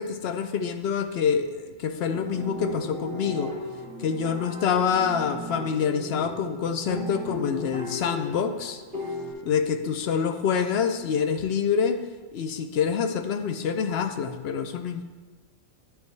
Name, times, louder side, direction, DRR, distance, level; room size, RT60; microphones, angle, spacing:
voice 1, 0.0-3.5 4.0-8.8 9.4-12.0 12.3-15.0, left 6 dB, 60° left, 7 dB, 0.7 m, -26 dB
sound 1, 2.0-9.3, left 2 dB, 40° right, 2.4 m, -36 dB
10.5 x 4.8 x 3.2 m, 1.2 s
omnidirectional pair, 1.4 m